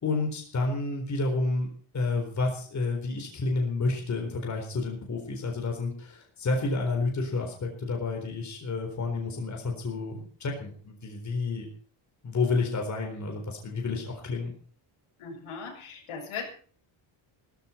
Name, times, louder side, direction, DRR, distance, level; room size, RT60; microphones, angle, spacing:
voice 1, 0.0-1.7 1.9-11.7 12.2-14.5, left 3 dB, 35° left, 2 dB, 4.2 m, -30 dB
voice 2, 15.2-16.5, left 5 dB, 90° left, 0 dB, 7.5 m, -38 dB
17.5 x 14.0 x 4.4 m, 0.43 s
cardioid pair, 170°, 50 cm